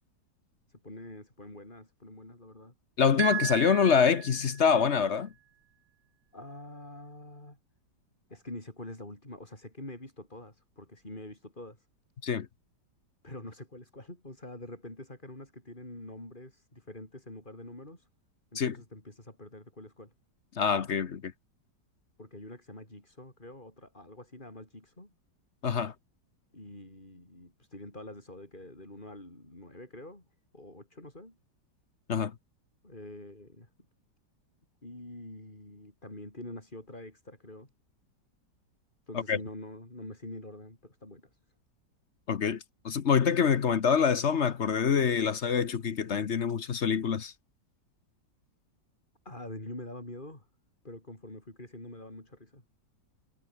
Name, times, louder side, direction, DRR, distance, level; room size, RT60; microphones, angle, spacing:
voice 1, 0.7-2.7 6.3-7.6 8.3-11.9 13.2-18.1 18.5-20.1 22.2-25.1 26.5-30.2 30.5-31.4 32.8-33.7 34.8-37.7 39.1-41.4 49.3-50.5 50.8-52.6, left 1 dB, 25° left, 5.5 m, -46 dB
voice 2, 3.0-5.3 12.2-12.5 18.6-18.8 20.6-21.3 25.6-25.9 32.1-32.3 39.3-39.4 42.3-42.6 42.8-47.3, left 6 dB, 45° left, 1.1 m, -25 dB
sound 1, 3.2-4.7, right 12 dB, 75° right, 1.5 m, -35 dB
omnidirectional pair, 1.9 m